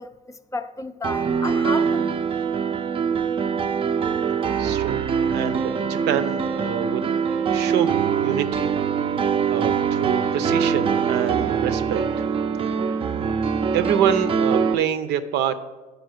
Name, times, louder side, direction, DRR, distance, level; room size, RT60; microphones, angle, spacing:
voice 1, 0.0-2.2, left 3 dB, 20° left, 0.5 m, -33 dB
Piano, 1.0-14.7, right 6 dB, 30° right, 0.5 m, -23 dB
voice 2, 4.6-5.0 5.3-7.0 7.5-8.7 9.2-12.0 12.7-13.1 13.7-15.7, right 9 dB, 85° right, 0.6 m, -26 dB
9.3 x 5.0 x 6.4 m
cardioid pair, 110°, 17 cm